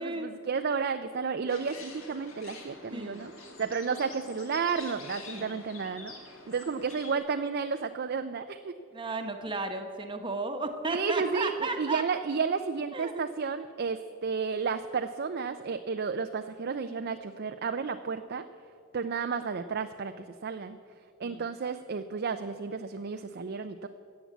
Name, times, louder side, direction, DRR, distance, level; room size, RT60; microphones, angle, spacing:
voice 1, 0.0-3.3 3.6-6.1 6.5-8.7 10.9-18.4 18.9-20.8 21.2-23.9, right 5 dB, 50° right, 8 dB, 0.5 m, -32 dB
sound 1, 1.5-7.2, left 3 dB, 70° left, 2.4 m, -47 dB
voice 2, 2.9-3.2 3.6-3.7 5.3-5.6 8.9-12.0 12.9-13.3 21.2-21.5, right 3 dB, 20° right, 5 dB, 1.0 m, -34 dB
14.5 x 8.7 x 8.3 m, 2.3 s
head